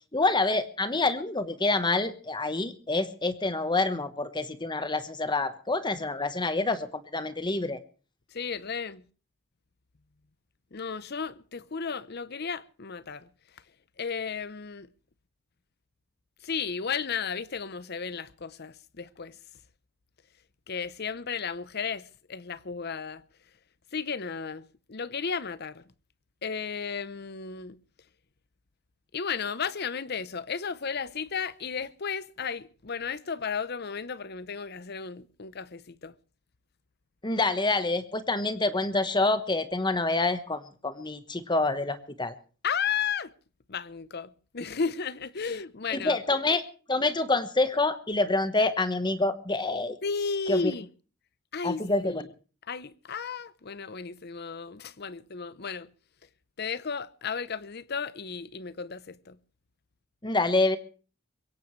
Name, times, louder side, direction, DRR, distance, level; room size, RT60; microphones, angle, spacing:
voice 1, 0.1-7.8 37.2-42.3 45.9-46.6 46.9-50.0 50.5-50.7 51.6-52.2 60.2-60.8, left 2 dB, 20° left, 1.2 m, -27 dB
voice 2, 8.3-9.0 10.7-13.3 14.0-14.9 16.4-19.4 20.7-23.2 23.9-25.8 26.4-27.8 29.1-36.1 42.6-43.3 43.7-46.2 50.0-50.9 51.5-52.3 52.7-55.9 56.6-59.4, left 5 dB, 50° left, 0.8 m, -34 dB
22.5 x 17.0 x 3.2 m
head